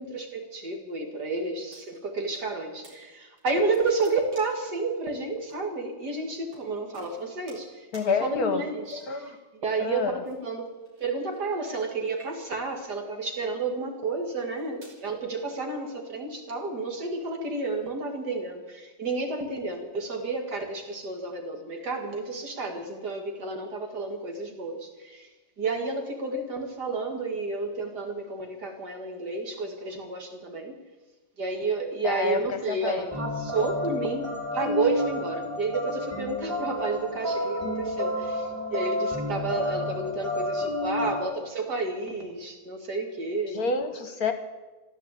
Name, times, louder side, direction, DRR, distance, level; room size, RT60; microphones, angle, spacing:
voice 1, 0.0-9.3 9.6-10.7 11.0-25.3 25.6-30.7 31.4-43.6, right 3 dB, 55° right, 3 dB, 2.7 m, -31 dB
sound 1, 1.7-2.5 2.8-3.0 3.4-4.7 5.5-5.6 6.5-6.7 6.9-7.7 7.9-8.1 8.8-9.3 10.2-11.8 12.1-12.7 13.4-13.6 14.3-15.0, right 1 dB, 85° right, 4.8 m, -52 dB
voice 2, 7.9-8.6 8.9-9.4 9.8-10.2 32.0-33.1 33.6-33.7 43.5-44.3, left 4 dB, 55° left, 8 dB, 1.3 m, -28 dB
sound 2, 33.1-41.2, left 1 dB, 5° right, 3.9 m, -30 dB
14.5 x 11.5 x 8.3 m, 1.2 s
omnidirectional pair, 2.1 m